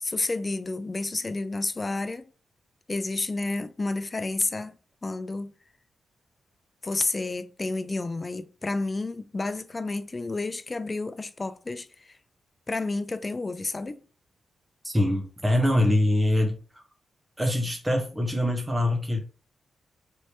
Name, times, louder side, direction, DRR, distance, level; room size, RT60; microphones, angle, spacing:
voice 1, 0.0-2.3 2.9-4.7 5.0-5.5 6.8-12.2 12.7-14.0, left 3 dB, 30° left, 0.4 m, -30 dB
voice 2, 14.8-16.8 17.4-19.2, left 1 dB, 10° right, 0.8 m, -24 dB
3.3 x 2.9 x 2.8 m
cardioid pair, 65°, 0 cm